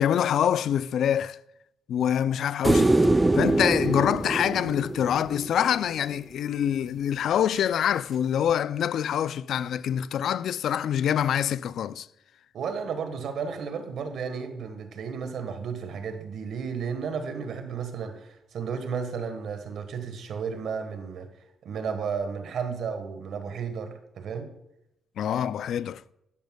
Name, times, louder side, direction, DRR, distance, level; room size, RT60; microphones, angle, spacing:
voice 1, 0.0-1.4 1.9-3.0 3.3-12.1 25.2-26.0, left 9 dB, 70° left, 0.3 m, -25 dB
sound 1, 2.6-5.9 8.5-8.6, right 2 dB, 15° right, 0.4 m, -23 dB
voice 2, 12.5-21.3 21.6-24.5, right 6 dB, 70° right, 1.4 m, -33 dB
11.5 x 10.5 x 2.3 m
cardioid pair, 90°, 0 cm